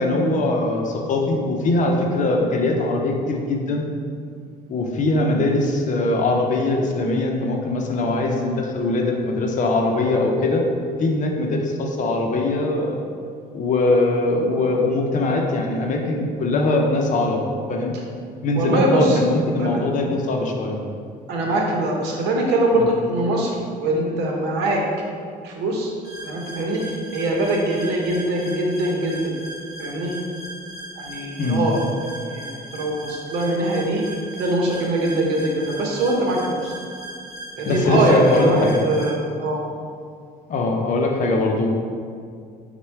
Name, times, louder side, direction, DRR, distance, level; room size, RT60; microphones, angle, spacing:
voice 1, 0.0-3.9 4.7-10.6 11.0-13.0 13.5-17.4 17.7-17.9 18.4-20.8 22.7-22.9 31.4-31.6 37.7-38.8 40.5-41.7, left 2 dB, 50° left, 1 dB, 0.6 m, -21 dB
voice 2, 18.5-19.2 19.6-19.8 21.3-24.8 25.4-25.9 26.2-26.8 27.1-29.2 29.8-30.1 31.0-31.8 32.3-32.4 32.7-34.0 34.4-36.7 37.6-39.6, right 1 dB, 85° right, 0 dB, 0.8 m, -22 dB
sound 1, 26.0-39.1, right 1 dB, 25° right, 0.7 m, -38 dB
4.3 x 2.2 x 4.4 m, 2.2 s
cardioid pair, 110°, 17 cm